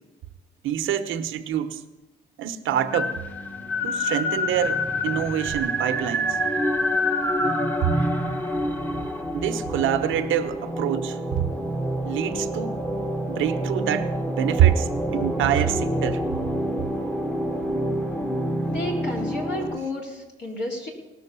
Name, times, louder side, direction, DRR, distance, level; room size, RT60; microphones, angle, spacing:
voice 1, 0.6-1.8 2.4-3.2 3.8-6.4 7.8-7.9 9.3-11.4 12.0-12.7 13.3-16.2, right 10 dB, 85° right, 8 dB, 1.0 m, -25 dB
sound 1, 2.7-19.8, equal, 10° left, 1.2 m, -27 dB
voice 2, 18.7-20.9, left 2 dB, 60° left, -2 dB, 3.8 m, -31 dB
18.5 x 6.6 x 6.8 m, 1.1 s
cardioid pair, 90°, 20 cm